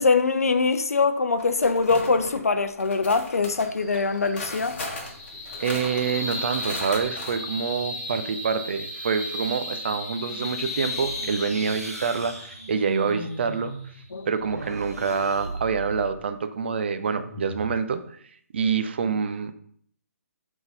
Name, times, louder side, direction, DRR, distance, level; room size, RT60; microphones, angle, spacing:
voice 1, 0.0-4.8 14.1-14.3, left 4 dB, 65° left, 0.6 m, -23 dB
sound 1, 1.4-2.4 2.8-7.3, left 2 dB, 45° left, 1.7 m, -37 dB
sound 2, 3.4-16.0, left 1 dB, 15° left, 2.0 m, -36 dB
voice 2, 5.6-13.7 14.3-18.2 18.5-19.5, right 6 dB, 40° right, 0.6 m, -26 dB
sound 3, 10.3-16.2 17.1-17.8, right 2 dB, 75° right, 1.4 m, -38 dB
5.5 x 3.8 x 5.5 m
figure-of-eight pair, 140°, 9 cm